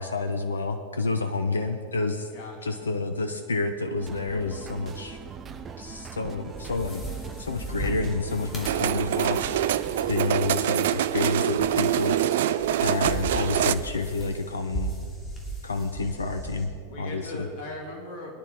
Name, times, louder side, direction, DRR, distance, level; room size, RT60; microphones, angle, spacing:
voice 1, 0.0-2.3 2.6-5.2 5.8-7.0 7.4-9.6 10.1-12.2 12.8-14.9 15.6-16.7 17.0-17.5, left 3 dB, 75° left, 8 dB, 0.7 m, -29 dB
voice 2, 2.3-2.8 16.9-18.4, left 1 dB, 45° left, 0 dB, 3.0 m, -39 dB
Repetitive Beeping, 4.0-10.7, right 6 dB, 25° right, 0.9 m, -41 dB
sound 1, 6.4-16.6, right 2 dB, 20° left, 2.8 m, -38 dB
sound 2, 8.6-13.7, right 11 dB, 55° right, 0.4 m, -25 dB
22.5 x 10.5 x 3.5 m, 2.3 s
figure-of-eight pair, 90°, 0 cm